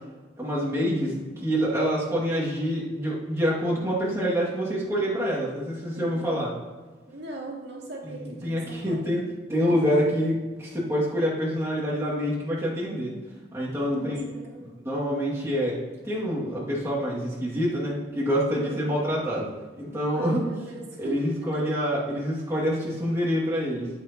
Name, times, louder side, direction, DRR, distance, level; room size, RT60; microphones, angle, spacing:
voice 1, 0.4-6.5 8.4-9.2 9.5-13.1 13.5-14.2 14.8-15.8 16.0-19.5 19.8-20.4 21.0-23.9, equal, 15° right, -7 dB, 2.4 m, -26 dB
voice 2, 5.9-6.3 7.1-9.0 9.7-9.9 13.8-14.6 18.6-18.8 20.1-21.2 21.5-21.6, right 1 dB, 80° right, -3 dB, 2.3 m, -40 dB
13.5 x 8.3 x 3.0 m, 1.3 s
head